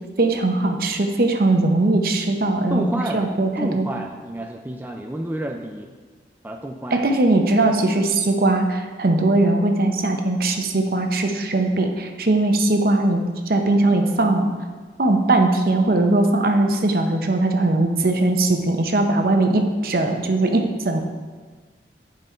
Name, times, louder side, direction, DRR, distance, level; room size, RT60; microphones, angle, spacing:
voice 1, 0.2-2.8 3.1-3.9 6.9-14.5 15.0-21.0, right 2 dB, 55° right, 5 dB, 0.7 m, -20 dB
voice 2, 2.7-3.3 3.6-5.9 6.4-7.1, right 1 dB, 10° right, 3 dB, 0.3 m, -29 dB
8.3 x 5.3 x 4.4 m, 1.4 s
head